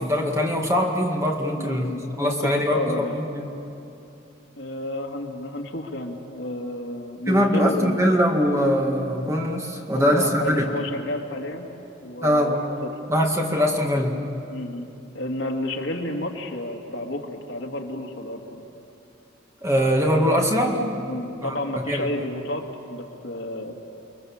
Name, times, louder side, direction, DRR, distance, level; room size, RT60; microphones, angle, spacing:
voice 1, 0.0-3.5 7.3-10.6 12.2-12.6 13.1-14.2 19.6-20.8 21.4-22.1, equal, 15° right, 1 dB, 2.0 m, -22 dB
voice 2, 1.5-3.2 4.6-8.1 9.9-11.7 12.0-12.6 14.5-14.9 15.1-18.6 21.1-23.7, left 1 dB, 65° left, 2 dB, 2.3 m, -31 dB
29.5 x 22.0 x 7.3 m, 2.8 s
head